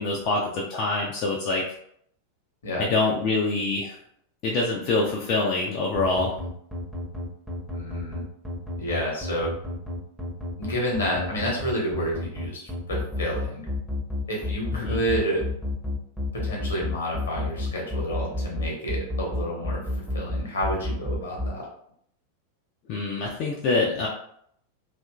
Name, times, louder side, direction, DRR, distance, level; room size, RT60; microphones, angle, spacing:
voice 1, 0.0-1.6 2.8-4.0 4.4-6.3 14.7-15.0 22.9-24.1, left 3 dB, 40° left, -3 dB, 0.4 m, -25 dB
sound 1, 6.0-21.5, left 2 dB, ahead, 0.7 m, -30 dB
voice 2, 7.7-8.2 8.8-9.5 10.6-13.7 14.3-15.4 16.3-19.8 20.1-21.7, equal, 65° left, -2 dB, 1.0 m, -29 dB
2.8 x 2.5 x 2.2 m, 0.67 s
figure-of-eight pair, 90°, 0 cm